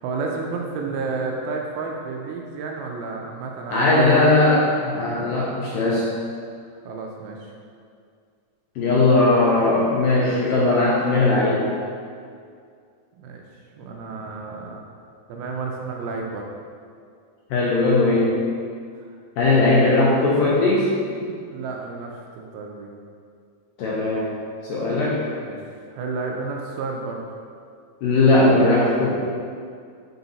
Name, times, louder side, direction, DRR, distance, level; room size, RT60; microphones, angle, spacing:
voice 1, 0.0-3.9 6.9-7.4 10.2-11.1 13.2-13.4 13.8-14.9 15.3-16.5 18.9-19.0 19.4-19.6 21.5-22.9 25.4-25.6 25.9-27.2, right 4 dB, 80° right, 0 dB, 2.3 m, -31 dB
voice 2, 3.7-6.1 8.8-11.6 17.5-18.3 19.4-20.9 23.8-24.2 24.6-25.2 28.0-29.1, left 2 dB, 80° left, -6 dB, 2.0 m, -18 dB
5.7 x 4.8 x 4.0 m, 2.2 s
omnidirectional pair, 4.6 m